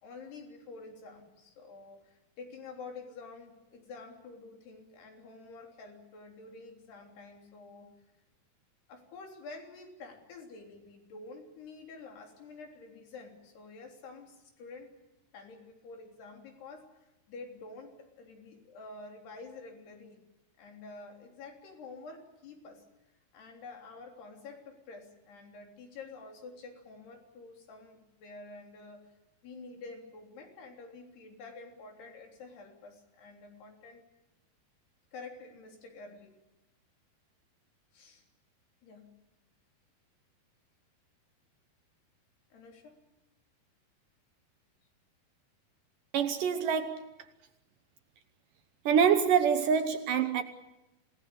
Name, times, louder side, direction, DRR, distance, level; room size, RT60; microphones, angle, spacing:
voice 1, 0.0-8.0 8.9-14.9 15.3-16.9 17.3-20.2 20.6-22.8 23.3-29.1 29.4-34.0 35.1-36.4 37.9-38.2 38.8-39.2 42.5-43.0, left 3 dB, 75° left, 5.6 m, -48 dB
voice 2, 46.1-47.2 48.9-50.4, right 7 dB, 70° right, 2.3 m, -26 dB
27.5 x 18.0 x 8.5 m
omnidirectional pair, 4.7 m